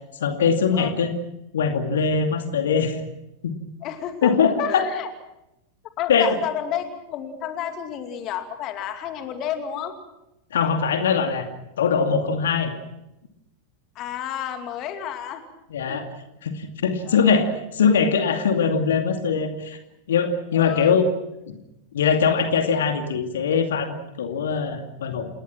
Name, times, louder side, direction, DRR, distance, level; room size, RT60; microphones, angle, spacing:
voice 1, 0.2-1.1 1.5-3.0 3.4-3.5 4.2-4.8 6.1-6.3 10.5-11.5 11.8-12.7 15.7-16.1 16.4-19.8 20.1-21.1 21.5-21.6 21.9-25.3, left 6 dB, 60° left, 6 dB, 2.4 m, -21 dB
voice 2, 3.8-4.3 4.6-5.1 6.0-10.0 14.0-15.4 15.9-16.0 17.0-17.3 20.5-21.0, left 9 dB, 35° left, 7 dB, 2.5 m, -30 dB
28.5 x 20.5 x 6.0 m, 0.89 s
figure-of-eight pair, 90°, 0 cm